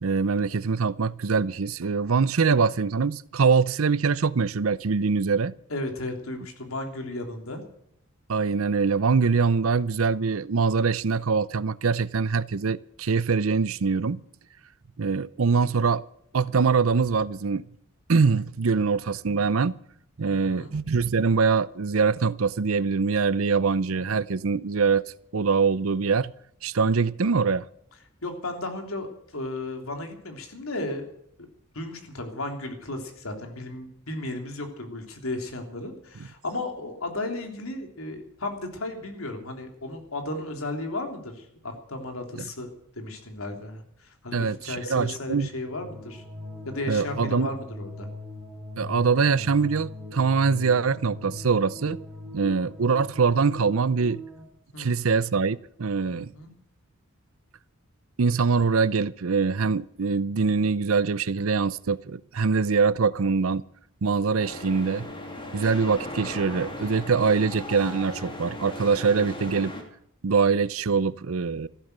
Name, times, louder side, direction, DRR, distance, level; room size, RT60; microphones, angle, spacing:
voice 1, 0.0-5.5 8.3-14.2 15.0-16.0 16.3-17.6 18.1-19.7 20.2-25.0 25.3-26.3 26.6-27.6 44.3-45.5 46.9-47.5 48.8-52.0 52.3-54.2 54.8-56.3 58.2-63.6 64.0-65.1 65.5-69.7 70.2-71.7, right 5 dB, 80° right, 0.6 m, -23 dB
voice 2, 5.7-7.6 20.2-20.8 28.2-31.1 31.7-46.2 46.6-48.1 54.7-55.1 56.0-56.5, left 2 dB, 80° left, 3.3 m, -34 dB
sound 1, 44.7-54.4, left 2 dB, 5° right, 5.4 m, -41 dB
sound 2, 64.4-69.8, left 1 dB, 25° left, 2.8 m, -37 dB
15.0 x 13.0 x 6.8 m
head